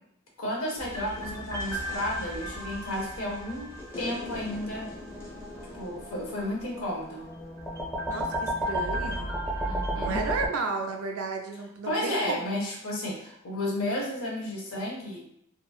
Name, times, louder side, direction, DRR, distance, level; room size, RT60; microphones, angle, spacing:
voice 1, 0.4-4.9 5.7-7.3 9.7-10.2 11.8-15.2, left 1 dB, 75° left, -1 dB, 0.7 m, -32 dB
sound 1, 0.8-10.5, equal, 15° left, 0.7 m, -34 dB
voice 2, 8.1-9.3 10.0-12.5, right 3 dB, 80° right, 2 dB, 0.4 m, -33 dB
2.8 x 2.4 x 2.3 m, 0.75 s
head